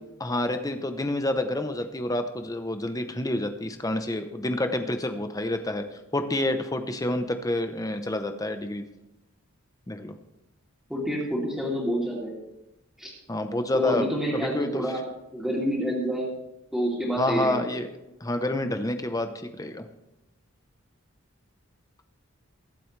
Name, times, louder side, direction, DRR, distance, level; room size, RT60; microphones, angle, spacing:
voice 1, 0.2-8.8 9.9-10.1 13.3-14.8 17.2-17.9 18.2-19.9, left 1 dB, 15° left, 7 dB, 0.8 m, -28 dB
voice 2, 10.9-12.4 13.0-13.1 13.7-15.0 15.3-16.3 16.7-17.6, equal, ahead, -5 dB, 3.1 m, -28 dB
23.0 x 7.8 x 3.3 m, 0.91 s
head